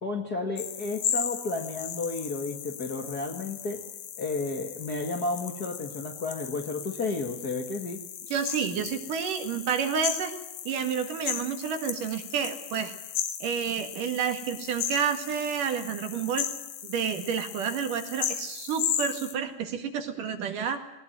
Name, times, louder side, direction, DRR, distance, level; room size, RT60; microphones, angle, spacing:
voice 1, 0.0-3.8 4.2-8.0, left 3 dB, 35° left, 2 dB, 1.6 m, -32 dB
sound 1, 0.6-19.3, left 10 dB, 70° left, 3.0 m, -36 dB
voice 2, 8.3-10.3 10.7-12.9 13.4-16.5 16.8-20.8, right 7 dB, 65° right, 6 dB, 3.4 m, -30 dB
20.0 x 19.0 x 9.0 m, 0.92 s
omnidirectional pair, 4.2 m